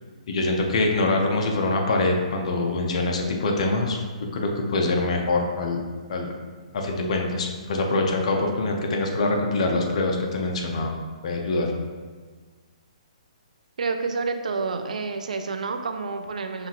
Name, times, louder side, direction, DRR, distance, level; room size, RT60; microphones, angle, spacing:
voice 1, 0.3-4.0 4.3-5.8 6.1-6.3 6.7-11.0 11.2-11.7, left 2 dB, 60° left, 2 dB, 0.6 m, -24 dB
voice 2, 13.8-16.7, right 4 dB, 85° right, 7 dB, 0.4 m, -29 dB
5.7 x 2.4 x 2.8 m, 1.4 s
hypercardioid pair, 155°, 4 cm